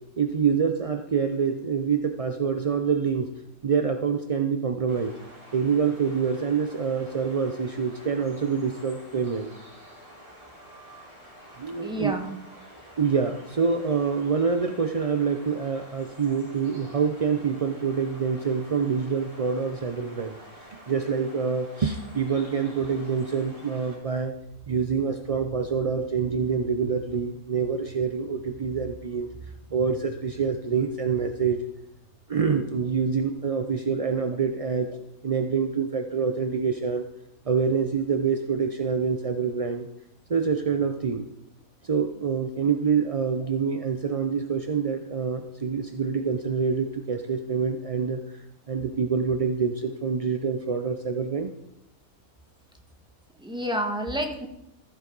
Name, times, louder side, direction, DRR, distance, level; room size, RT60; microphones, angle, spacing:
voice 1, 0.2-3.3 3.6-5.2 5.5-9.5 11.6-12.2 13.0-24.3 24.7-29.3 29.7-31.7 32.3-34.9 35.2-37.1 37.5-39.9 40.3-41.3 41.8-51.5, right 6 dB, 50° right, 6 dB, 0.4 m, -26 dB
sound 1, 4.9-24.0, equal, 20° right, 3.3 m, -48 dB
voice 2, 10.6-11.1 11.8-12.4 53.4-54.5, right 1 dB, 5° right, 3 dB, 1.3 m, -30 dB
14.5 x 9.8 x 3.9 m, 0.80 s
omnidirectional pair, 1.5 m